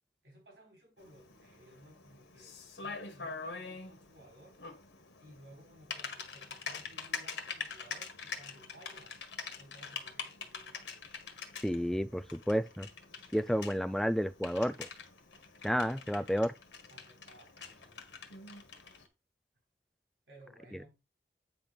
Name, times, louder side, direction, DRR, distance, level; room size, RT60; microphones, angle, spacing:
voice 1, 0.2-4.6 5.2-9.2 9.6-10.8 16.9-18.0 20.3-20.9, right 1 dB, 80° right, 4.2 m, -58 dB
Typing, 1.0-19.1, left 5 dB, 80° left, 1.4 m, -45 dB
voice 2, 11.6-12.9 13.3-14.9 15.6-16.5, equal, ahead, 0.3 m, -31 dB
8.8 x 3.3 x 5.9 m
head